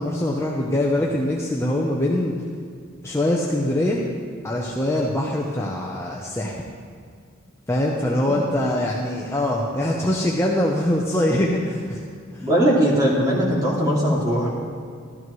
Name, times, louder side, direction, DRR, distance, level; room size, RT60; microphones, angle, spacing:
voice 1, 0.0-2.3 3.0-4.0 4.4-6.6 7.7-12.0 12.3-12.5, left 1 dB, 15° left, -2 dB, 0.7 m, -23 dB
voice 2, 12.4-14.5, equal, 20° right, -6 dB, 2.4 m, -20 dB
13.0 x 12.5 x 3.1 m, 2.2 s
head